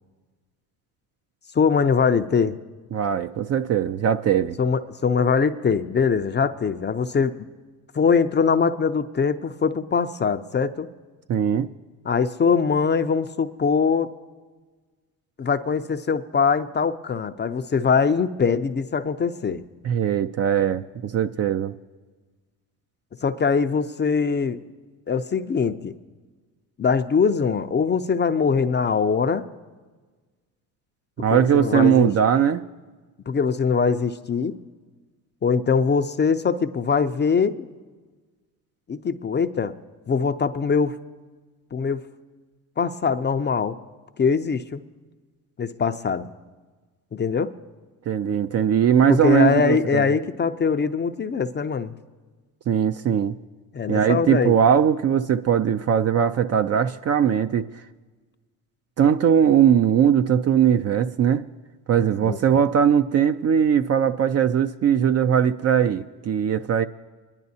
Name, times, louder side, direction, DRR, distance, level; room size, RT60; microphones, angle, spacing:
voice 1, 1.5-2.6 4.6-7.3 7.9-10.9 12.0-14.1 15.4-19.6 23.2-24.6 25.1-25.9 26.8-29.5 31.3-32.1 33.3-34.6 35.4-37.7 38.9-39.7 40.1-41.0 41.7-42.1 42.8-43.8 44.2-44.8 45.6-46.3 47.1-47.5 49.1-51.9 53.7-54.6 62.2-62.6, left 5 dB, 25° left, 9 dB, 0.5 m, -22 dB
voice 2, 2.9-4.6 11.3-11.7 19.8-21.7 31.2-32.6 48.1-50.1 52.7-53.4 53.9-57.7 59.0-61.4 61.9-66.9, right 8 dB, 35° right, 10 dB, 0.4 m, -20 dB
22.5 x 10.5 x 2.7 m, 1.4 s
supercardioid pair, 70°, 45 cm